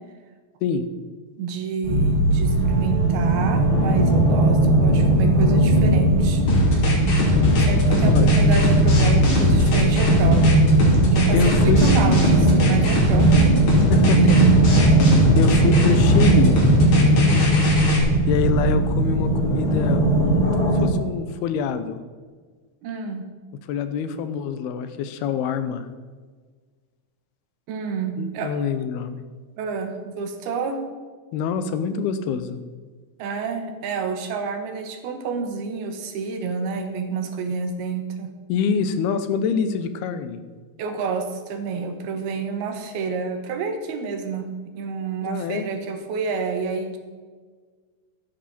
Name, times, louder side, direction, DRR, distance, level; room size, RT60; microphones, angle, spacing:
voice 1, 1.4-6.5 7.6-10.6 11.1-13.7 16.9-17.4 22.8-23.3 27.7-28.5 29.6-30.8 33.2-38.3 40.8-44.5 44.8-47.0, right 5 dB, 80° right, 6 dB, 3.2 m, -29 dB
sound 1, 1.8-20.9, right 2 dB, 15° left, 2.5 m, -18 dB
sound 2, 6.5-18.0, left 2 dB, 50° left, 3.9 m, -21 dB
voice 2, 8.0-8.4 11.3-11.8 13.9-14.4 15.4-16.6 18.3-22.0 23.7-25.9 28.2-29.2 31.3-32.6 38.5-40.4 45.2-45.7, left 6 dB, 85° left, 10 dB, 2.8 m, -25 dB
13.0 x 10.5 x 4.2 m, 1.5 s
omnidirectional pair, 4.5 m